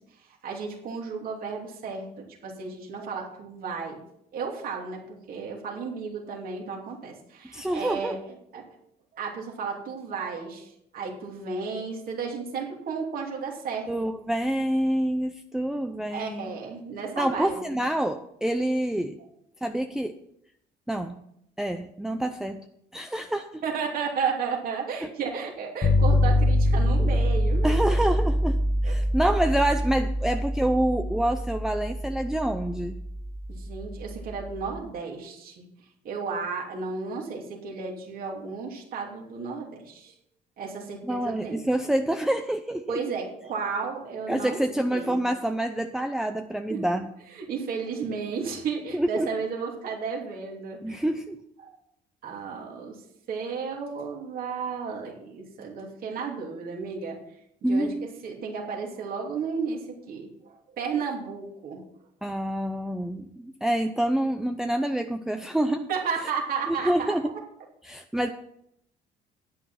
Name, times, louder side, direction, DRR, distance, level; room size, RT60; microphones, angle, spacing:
voice 1, 0.0-4.0 4.3-8.7 9.1-13.9 16.1-17.6 23.6-27.7 28.8-28.9 33.5-35.7 36.0-40.2 40.6-41.7 42.9-44.6 44.9-45.2 46.7-46.8 47.4-51.0 51.6-51.8 52.2-53.0 53.3-57.2 57.6-61.8 65.9-67.4, right 5 dB, 60° right, -1 dB, 3.0 m, -33 dB
voice 2, 7.5-8.2 13.9-16.6 17.2-19.2 19.6-20.2 20.9-21.2 21.6-22.6 22.9-23.6 25.0-25.1 27.6-33.0 41.0-43.0 44.3-47.1 48.9-49.3 50.8-51.4 57.6-58.1 62.2-65.9 66.7-67.3 67.8-68.3, right 1 dB, 5° right, 6 dB, 0.6 m, -27 dB
sound 1, 25.8-34.8, left 1 dB, 35° left, 1.5 m, -25 dB
10.0 x 9.0 x 5.7 m, 0.75 s
cardioid pair, 110°, 17 cm